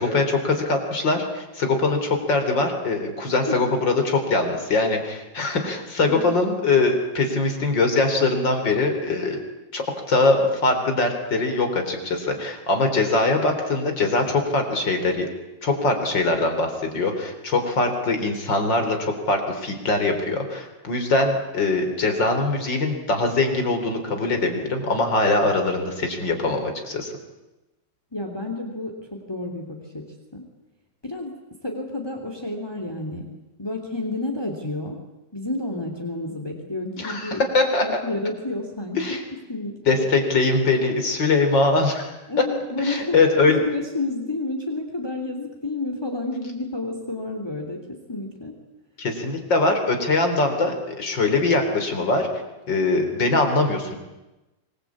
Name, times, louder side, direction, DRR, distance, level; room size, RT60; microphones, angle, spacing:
voice 1, 0.0-9.4 9.7-15.3 15.6-27.1 37.0-37.9 39.0-39.2 39.9-42.1 42.8-43.6 49.0-52.3 52.7-53.9, left 3 dB, 75° left, 5 dB, 4.4 m, -22 dB
voice 2, 28.1-30.0 30.3-30.4 31.0-31.3 31.6-33.2 33.6-35.0 35.3-37.4 37.8-39.0 39.5-40.0 42.3-43.2 43.4-47.8 48.1-48.5, left 2 dB, 15° left, 2 dB, 3.1 m, -30 dB
26.0 x 21.0 x 8.7 m, 1.0 s
omnidirectional pair, 2.0 m